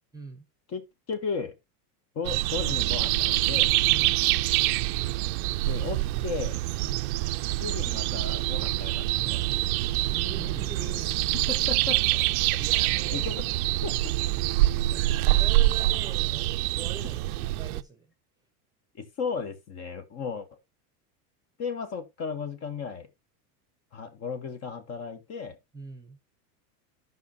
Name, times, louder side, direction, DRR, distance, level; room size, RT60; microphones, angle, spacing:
voice 1, 0.1-0.5 3.9-4.2 6.8-7.0 10.1-11.5 12.4-13.3 14.8-18.1 25.7-26.2, right 4 dB, 10° right, 0.9 m, -42 dB
voice 2, 0.7-1.6 2.1-3.7 5.7-6.6 7.6-9.4 11.5-12.0 13.1-13.5 13.8-14.1 18.9-20.5 21.6-23.1 23.9-25.6, left 5 dB, 35° left, 1.3 m, -35 dB
sound 1, 2.3-17.8, right 17 dB, 65° right, 0.6 m, -25 dB
12.5 x 5.5 x 2.8 m
supercardioid pair, 145°, 47 cm